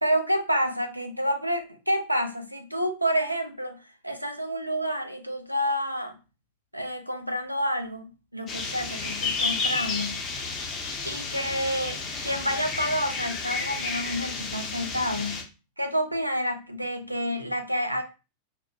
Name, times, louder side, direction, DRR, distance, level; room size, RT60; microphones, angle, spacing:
voice 1, 0.0-3.8 4.0-6.2 6.7-8.1 8.3-10.2 11.0-15.5 15.8-18.0, equal, 90° right, 0.5 m, -29 dB
sound 1, 8.5-15.4, left 4 dB, 25° left, 0.8 m, -31 dB
3.3 x 2.1 x 2.8 m
figure-of-eight pair, 90°, 0 cm